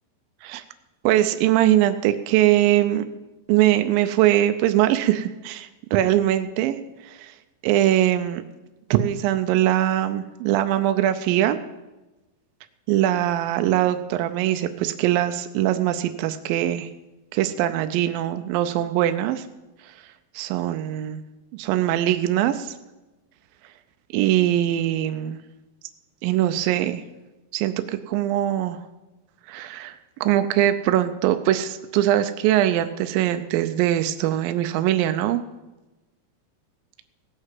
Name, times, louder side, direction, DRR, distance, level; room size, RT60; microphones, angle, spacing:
voice 1, 1.0-3.0 3.5-7.3 7.6-8.4 8.9-11.6 12.9-16.9 17.3-19.5 19.8-19.9 20.3-21.2 21.5-22.8 24.1-25.4 26.2-27.0 27.5-28.8 29.5-35.4, right 13 dB, 85° right, 9 dB, 2.0 m, -22 dB
17.5 x 6.5 x 7.5 m, 1.1 s
omnidirectional pair, 4.8 m